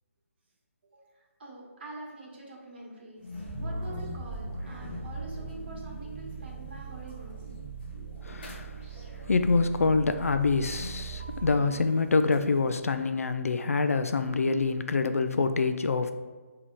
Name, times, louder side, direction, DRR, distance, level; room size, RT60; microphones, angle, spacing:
voice 1, 0.8-3.3 3.6-7.4, right 2 dB, 45° right, -2 dB, 1.3 m, -45 dB
sound 1, 3.2-13.3, left 2 dB, 45° left, 0.8 m, -47 dB
sound 2, 3.4-11.6, right 4 dB, 10° right, 1.3 m, -40 dB
voice 2, 8.2-8.9 9.3-16.1, left 4 dB, 75° left, 9 dB, 0.4 m, -26 dB
4.7 x 2.9 x 3.8 m, 1.3 s
figure-of-eight pair, 145°, 8 cm